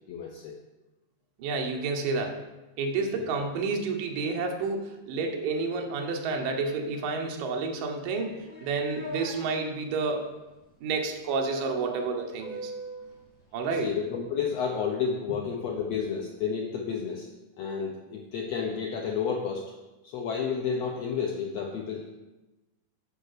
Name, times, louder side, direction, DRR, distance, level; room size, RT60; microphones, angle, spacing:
voice 1, 0.1-0.5 3.2-3.3 13.8-17.3 17.6-19.6 20.1-22.1, left 6 dB, 80° left, 0 dB, 1.4 m, -31 dB
voice 2, 1.4-2.4 2.8-8.4 8.6-10.3 10.8-12.7 13.5-13.9, right 4 dB, 80° right, 2 dB, 2.7 m, -30 dB
sound 1, 8.1-9.3 11.5-13.1, right 2 dB, 15° left, 2.6 m, -41 dB
9.0 x 4.9 x 6.6 m, 1.1 s
omnidirectional pair, 4.0 m